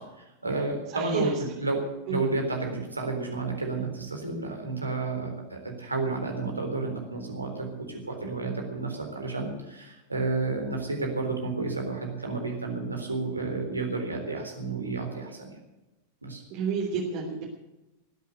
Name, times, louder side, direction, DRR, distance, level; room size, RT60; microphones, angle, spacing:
voice 1, 0.0-1.8 2.1-15.6 16.2-16.4, right 3 dB, 80° right, 2 dB, 3.8 m, -31 dB
voice 2, 0.9-1.2 2.1-2.2 16.5-17.4, right 6 dB, 45° right, -2 dB, 3.3 m, -30 dB
19.5 x 8.3 x 8.0 m, 0.99 s
figure-of-eight pair, 90°, 0 cm